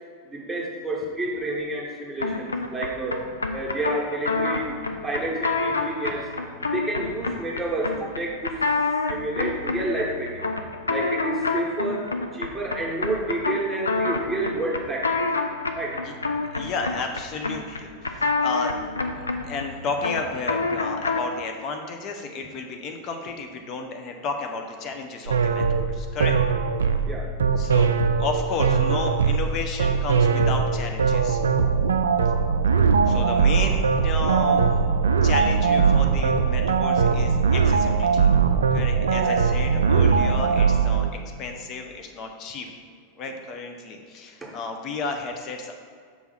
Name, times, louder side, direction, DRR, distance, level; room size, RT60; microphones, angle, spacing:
voice 1, 0.2-3.2 3.5-4.7 5.0-6.3 6.7-8.5 9.1-10.4 10.9-12.1 12.3-15.3 15.7-16.0 27.0-27.3 39.0-39.4 44.4-44.5, right 2 dB, 5° right, -4 dB, 1.4 m, -29 dB
sound 1, 2.2-21.4, left 3 dB, 75° left, 0.4 m, -28 dB
voice 2, 16.5-18.7 19.1-26.4 27.6-27.9 28.2-31.4 33.1-34.6 35.2-38.3 38.7-41.1 41.4-42.7 43.2-45.7, left 4 dB, 35° left, 4 dB, 0.7 m, -32 dB
sound 2, 25.3-41.1, right 5 dB, 70° right, 0.3 m, -20 dB
6.2 x 3.5 x 5.6 m, 2.1 s
figure-of-eight pair, 90°, 0 cm